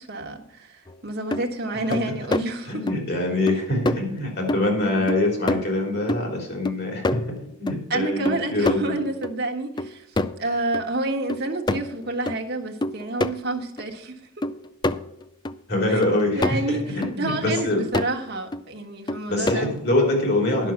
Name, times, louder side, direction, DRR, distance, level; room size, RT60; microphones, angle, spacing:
voice 1, 0.0-2.9 7.9-10.1 10.4-14.1 15.9-16.0 16.3-19.8, right 2 dB, 50° right, 2 dB, 1.4 m, -29 dB
sound 1, 0.9-1.0 1.3-1.5 1.9-2.5 2.9-3.0 3.5-3.6 3.9-4.0 4.5-4.8 5.1-5.8 6.1-7.8 8.3-9.4 9.8-10.5 10.7-10.9 11.3-12.4 12.8-13.3 13.8-13.9 14.4-15.6 16.0-16.7 17.0-17.2 17.6-18.1 18.5-18.6 19.1-19.8, left 2 dB, 20° left, 0.3 m, -27 dB
voice 2, 2.6-9.0 15.7-17.8 19.3-20.7, left 2 dB, 50° left, 1 dB, 3.3 m, -24 dB
11.0 x 6.2 x 5.9 m, 0.80 s
head